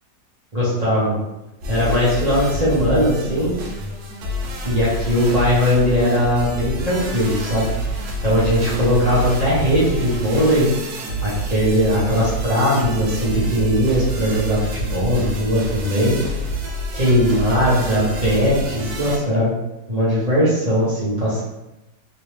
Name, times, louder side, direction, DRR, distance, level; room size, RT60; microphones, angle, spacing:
voice 1, 0.5-1.1 1.7-3.5 4.6-7.6 8.2-10.7 11.2-16.2 16.9-19.5 19.9-21.4, equal, 30° right, -8 dB, 0.8 m, -19 dB
sound 1, 1.6-19.2, right 1 dB, 75° right, 1.2 m, -28 dB
3.0 x 2.9 x 3.2 m, 0.96 s
omnidirectional pair, 1.8 m